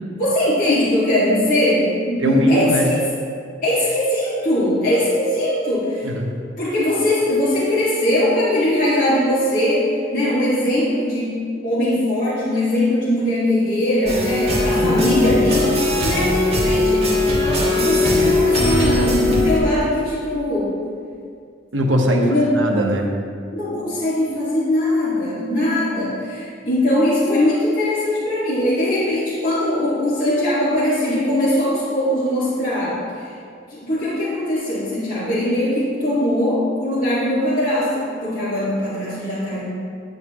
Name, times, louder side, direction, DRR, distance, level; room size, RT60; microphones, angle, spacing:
voice 1, 0.2-3.0 3.6-6.1 6.6-15.7 16.0-17.0 17.7-20.7 22.2-22.5 23.5-33.3 33.7-39.7, left 1 dB, 50° left, -11 dB, 2.0 m, -20 dB
voice 2, 2.2-2.9 6.0-6.3 14.8-15.1 21.7-22.3 22.5-23.1, equal, 85° right, 1 dB, 1.1 m, -20 dB
sound 1, 14.1-19.6, left 2 dB, 35° right, 1.5 m, -19 dB
9.8 x 9.0 x 3.0 m, 2.3 s
head